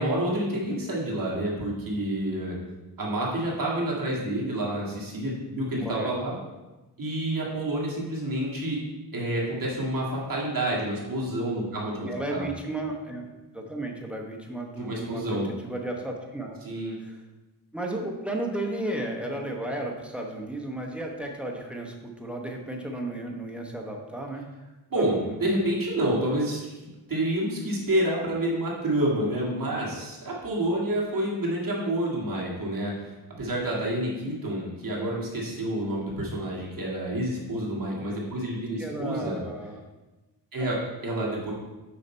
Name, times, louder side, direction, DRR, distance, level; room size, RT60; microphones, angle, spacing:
voice 1, 0.0-2.6 3.0-6.4 7.0-8.8 9.1-12.5 14.8-15.5 16.6-17.0 24.9-26.7 27.1-39.4 40.5-40.8 41.0-41.5, right 1 dB, 50° right, -4 dB, 2.0 m, -28 dB
voice 2, 5.8-6.1 12.0-13.2 13.5-16.6 17.0-17.2 17.7-24.4 24.9-25.4 38.8-39.8 40.6-41.3, right 1 dB, 5° right, 1 dB, 1.0 m, -34 dB
6.8 x 5.0 x 4.4 m, 1.1 s
wide cardioid pair, 125°, 42 cm